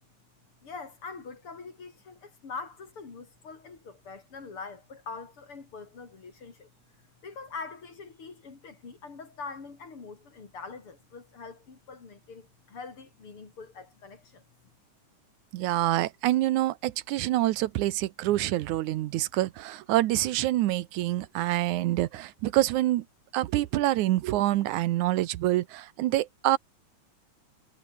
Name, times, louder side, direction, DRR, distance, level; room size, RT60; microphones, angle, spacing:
voice 1, 0.6-6.7 7.2-14.4, left 4 dB, 45° left, 4.2 m, -43 dB
voice 2, 15.5-23.0 23.3-26.6, right 15 dB, 80° right, 2.3 m, -26 dB
omnidirectional pair, 3.4 m